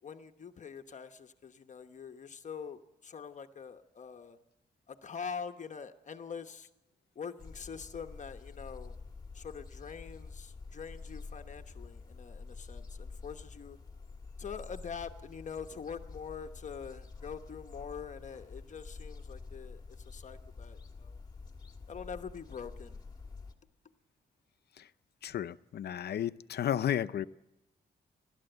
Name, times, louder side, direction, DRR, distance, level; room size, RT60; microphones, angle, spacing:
voice 1, 0.0-4.4 4.9-6.7 7.1-9.0 9.3-13.8 14.4-21.2 21.9-23.0, left 6 dB, 45° left, 6 dB, 1.1 m, -44 dB
sound 1, 7.4-23.5, left 4 dB, 25° left, 1.8 m, -48 dB
voice 2, 25.2-27.3, left 10 dB, 70° left, 13 dB, 0.7 m, -33 dB
30.0 x 12.5 x 8.0 m, 0.97 s
wide cardioid pair, 130°, 17 cm